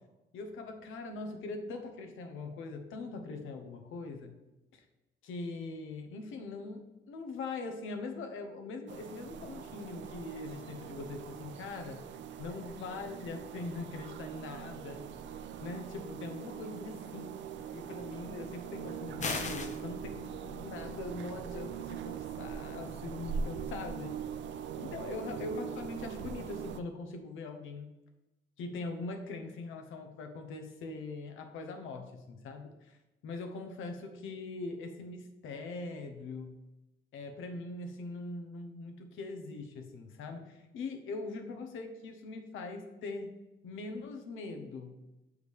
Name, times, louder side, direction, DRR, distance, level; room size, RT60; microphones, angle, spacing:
voice 1, 0.3-4.3 4.7-4.8 5.2-12.1 12.4-15.0 15.6-17.3 17.7-24.2 24.8-27.9 28.6-33.0 33.2-36.6 37.1-43.3 43.6-45.0, left 3 dB, 85° left, 5 dB, 1.0 m, -42 dB
sound 1, 8.9-26.8, right 7 dB, 65° right, 0.5 m, -42 dB
sound 2, 19.2-19.8, left 4 dB, 35° left, 0.8 m, -34 dB
6.6 x 4.9 x 3.5 m, 1.0 s
cardioid pair, 90°, 20 cm